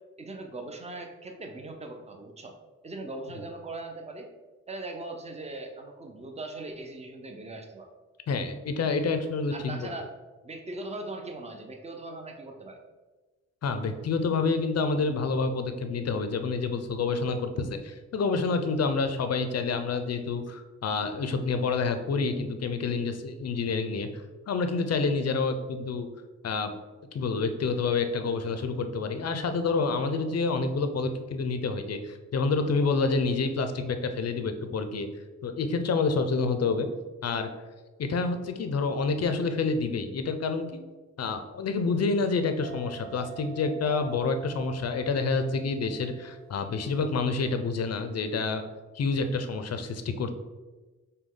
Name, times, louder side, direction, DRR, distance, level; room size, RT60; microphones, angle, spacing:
voice 1, 0.2-2.6 2.8-4.3 4.7-7.9 9.5-10.1 10.4-12.8, right 2 dB, 20° right, 4 dB, 0.6 m, -40 dB
voice 2, 8.3-9.9 13.6-24.1 24.5-26.1 26.4-26.7 27.1-35.1 35.4-36.9 37.2-37.5 38.0-40.8 41.2-48.6 48.9-50.3, left 4 dB, 50° left, 8 dB, 0.5 m, -28 dB
sound 1, 42.6-47.3, right 7 dB, 55° right, 1.0 m, -47 dB
5.1 x 2.3 x 3.7 m, 1.2 s
cardioid pair, 70°, 32 cm